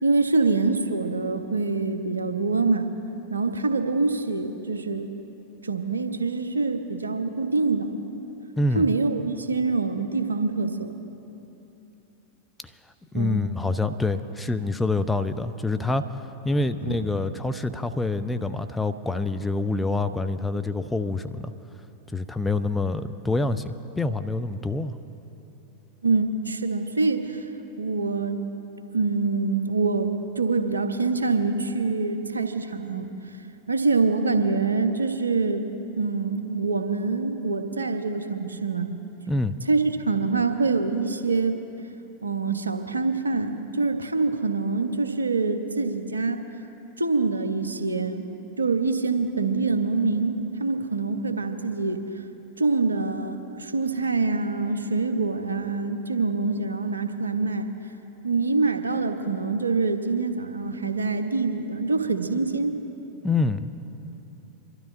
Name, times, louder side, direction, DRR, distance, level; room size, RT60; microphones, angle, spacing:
voice 1, 0.0-2.9 3.3-5.1 5.6-7.9 8.7-10.9 13.1-13.5 16.8-17.0 26.0-27.5 27.8-28.4 28.9-33.1 33.7-35.6 36.0-38.9 39.7-41.6 42.2-46.4 47.0-48.3 48.6-52.0 52.6-57.7 58.2-62.8, right 3 dB, 75° right, 7 dB, 1.0 m, -25 dB
voice 2, 8.6-8.9 13.1-16.0 16.4-21.5 22.1-25.0 39.3-39.5 63.2-63.7, left 2 dB, 10° left, 10 dB, 0.5 m, -26 dB
28.0 x 12.5 x 2.7 m, 3.0 s
figure-of-eight pair, 90°, 0 cm